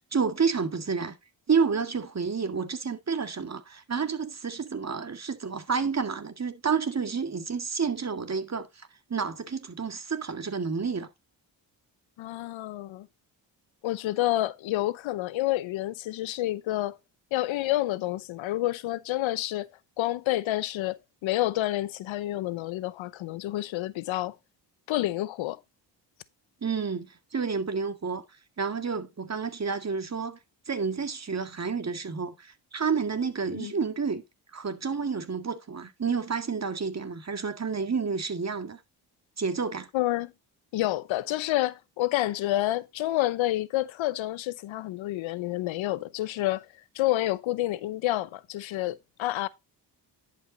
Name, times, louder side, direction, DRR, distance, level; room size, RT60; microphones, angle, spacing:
voice 1, 0.1-1.2 1.5-11.1 26.6-28.2 28.6-30.4 30.7-34.2 34.5-38.8 39.4-39.9, right 5 dB, 35° right, 2.0 m, -30 dB
voice 2, 12.2-13.1 13.8-17.0 17.3-19.7 20.0-24.4 24.9-25.6 33.5-33.7 39.9-40.3 40.7-46.7 46.9-49.5, left 15 dB, 85° left, 0.9 m, -29 dB
10.5 x 5.3 x 4.0 m
cardioid pair, 65°, 45 cm